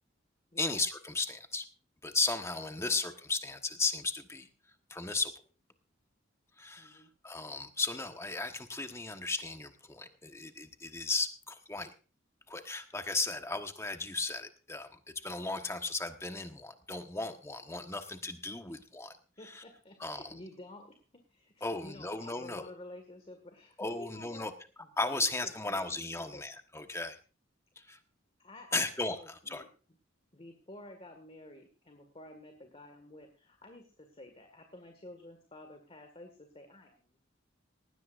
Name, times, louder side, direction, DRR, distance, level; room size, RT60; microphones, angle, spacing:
voice 1, 0.6-1.7 2.0-4.5 4.9-5.3 6.6-11.9 12.5-19.1 19.4-19.6 20.0-20.3 21.6-22.7 23.8-24.5 25.0-27.2 27.8-28.0 28.7-29.6, left 3 dB, 15° left, 6 dB, 1.2 m, -35 dB
voice 2, 6.8-7.1 19.4-24.5 24.8-26.4 28.4-29.7 30.3-37.2, left 1 dB, 30° left, 6 dB, 1.8 m, -51 dB
19.5 x 16.5 x 2.5 m, 0.35 s
head